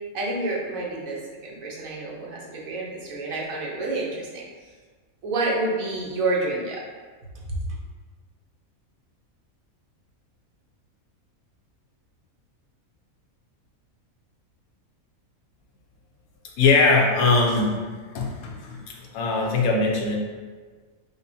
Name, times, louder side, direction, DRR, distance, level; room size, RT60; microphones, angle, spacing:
voice 1, 0.1-4.4 5.2-6.8 7.4-7.6, right 2 dB, 75° right, -3 dB, 1.2 m, -28 dB
voice 2, 16.6-17.8 18.1-20.2, left 3 dB, 85° left, -1 dB, 1.1 m, -21 dB
5.2 x 2.2 x 2.6 m, 1.5 s
omnidirectional pair, 1.5 m